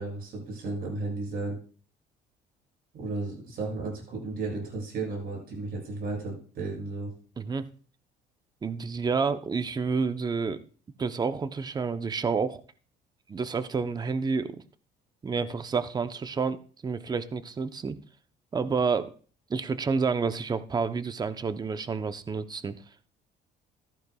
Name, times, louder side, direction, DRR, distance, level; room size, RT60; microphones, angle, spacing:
voice 1, 0.0-1.6 2.9-7.1, right 3 dB, 65° right, 0 dB, 7.2 m, -34 dB
voice 2, 8.6-10.6 11.0-12.6 13.3-14.6 15.2-16.6 16.8-18.0 18.5-19.1 19.5-22.8, right 5 dB, 25° right, 11 dB, 0.7 m, -29 dB
14.5 x 14.0 x 2.3 m, 0.40 s
cardioid pair, 110°, 17 cm